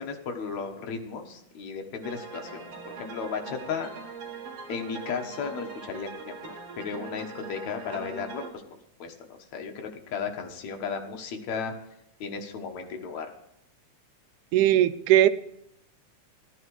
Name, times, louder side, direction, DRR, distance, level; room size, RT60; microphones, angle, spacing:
voice 1, 0.0-3.9 4.7-8.4 8.7-11.7 12.2-13.3, left 5 dB, 70° left, 3 dB, 2.6 m, -35 dB
sound 1, 2.0-8.5, right 4 dB, 55° right, 2.6 m, -41 dB
voice 2, 14.5-15.3, right 12 dB, 85° right, 13 dB, 2.1 m, -19 dB
14.5 x 12.0 x 4.8 m, 0.78 s
omnidirectional pair, 3.4 m